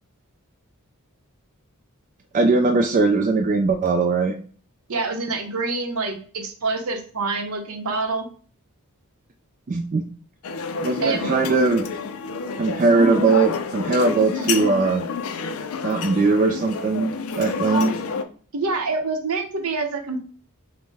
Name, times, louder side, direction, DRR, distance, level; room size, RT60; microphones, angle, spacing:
voice 1, 2.3-4.3 9.7-10.0 10.8-11.9 12.6-15.1 15.8-17.9, right 3 dB, 35° right, 4 dB, 0.3 m, -20 dB
voice 2, 4.9-8.3 11.0-11.3 12.8-13.3 14.4-14.9 18.5-20.2, right 3 dB, 70° right, 5 dB, 0.8 m, -27 dB
sound 1, 10.4-18.2, left 5 dB, 70° left, 0.4 m, -29 dB
5.2 x 2.1 x 3.3 m, 0.43 s
head